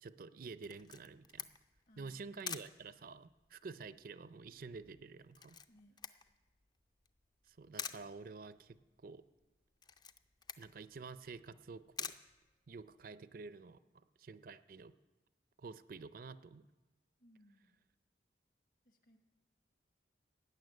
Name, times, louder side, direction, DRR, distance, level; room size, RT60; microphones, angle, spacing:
voice 1, 0.0-1.5 2.0-5.6 7.5-9.2 10.6-12.1 12.7-13.8 14.2-14.9 15.6-16.7, right 4 dB, 50° right, 14 dB, 0.4 m, -49 dB
Camera, 0.6-13.1, left 6 dB, 25° left, 0.4 m, -50 dB
voice 2, 1.9-2.5 5.7-6.0 17.2-17.8 18.8-19.2, equal, 50° left, 6 dB, 1.4 m, -66 dB
15.5 x 7.0 x 9.3 m, 1.2 s
head